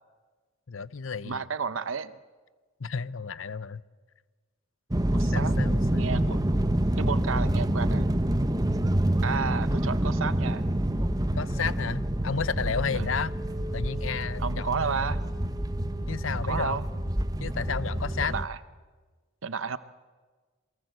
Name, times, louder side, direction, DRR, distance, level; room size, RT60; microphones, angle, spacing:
voice 1, 0.7-1.4 2.8-3.8 5.2-6.4 11.3-13.3 13.7-15.1 16.1-16.8 17.4-18.3, left 5 dB, 80° left, 18 dB, 0.7 m, -32 dB
voice 2, 1.2-2.1 5.1-5.5 5.9-6.6 7.0-8.1 9.2-10.6 12.9-13.1 14.4-15.2 16.4-16.9 18.2-18.6 19.4-19.8, right 5 dB, 90° right, 14 dB, 1.0 m, -32 dB
sound 1, 4.9-18.5, right 1 dB, 20° right, 1.0 m, -27 dB
27.0 x 22.5 x 8.0 m, 1.4 s
head